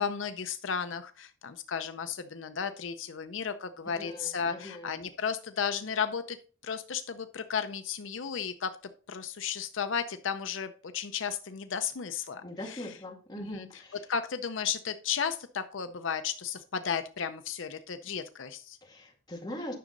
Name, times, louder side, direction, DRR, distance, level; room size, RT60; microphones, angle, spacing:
voice 1, 0.0-6.4 6.6-8.8 9.1-13.0 13.4-13.8 14.1-18.8, left 7 dB, 75° left, 9 dB, 0.6 m, -34 dB
voice 2, 3.9-5.0 12.4-14.0 18.8-19.8, left 1 dB, 20° left, 0 dB, 2.1 m, -41 dB
10.5 x 6.3 x 3.9 m, 0.40 s
head